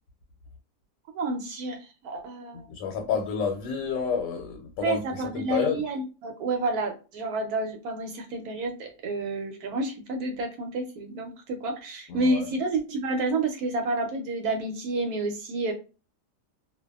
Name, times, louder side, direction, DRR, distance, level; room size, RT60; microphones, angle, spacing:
voice 1, 1.1-1.8 2.0-2.7 4.8-15.7, right 2 dB, 70° right, 1.0 m, -29 dB
voice 2, 2.7-5.8 12.1-12.5, left 6 dB, 90° left, 1.2 m, -29 dB
2.6 x 2.3 x 2.2 m
omnidirectional pair, 1.8 m